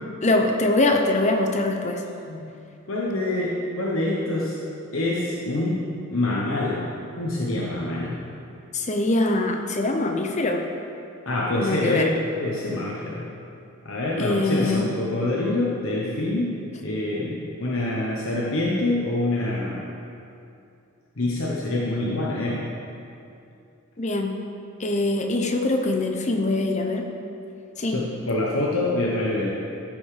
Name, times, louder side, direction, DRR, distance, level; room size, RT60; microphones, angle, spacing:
voice 1, 0.2-2.0 8.7-10.6 11.5-12.1 14.2-14.9 24.0-24.3 24.8-27.0 27.8-28.0, left 2 dB, 35° left, 3 dB, 0.8 m, -23 dB
voice 2, 2.9-4.6 4.9-5.8 6.1-6.8 7.2-8.2 11.3-12.1 12.4-13.3 13.8-16.5 16.8-19.8 21.2-22.7 27.9-29.5, left 2 dB, 65° left, -5 dB, 1.2 m, -26 dB
14.0 x 5.4 x 5.1 m, 2.6 s
head